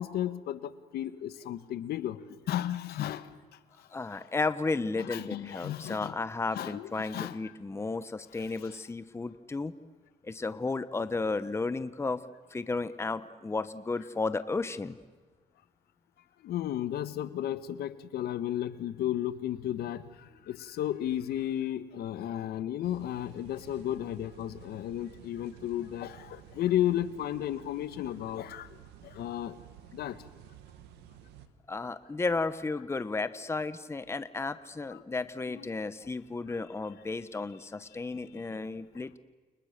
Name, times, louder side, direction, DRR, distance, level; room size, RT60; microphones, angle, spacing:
voice 1, 0.0-2.2 2.5-3.3 4.1-4.3 5.0-6.1 6.5-7.4 8.4-8.8 16.4-28.7 29.0-29.6 29.9-30.2 34.9-35.0 35.5-35.6 38.3-38.4, left 12 dB, 70° left, 13 dB, 1.5 m, -34 dB
voice 2, 3.9-9.7 10.2-12.2 12.5-14.9 31.7-39.2, left 3 dB, 15° left, 13 dB, 1.1 m, -33 dB
sound 1, 22.8-31.5, right 10 dB, 90° right, 2.1 m, -53 dB
30.0 x 29.5 x 6.8 m, 1.4 s
cardioid pair, 110°, 17 cm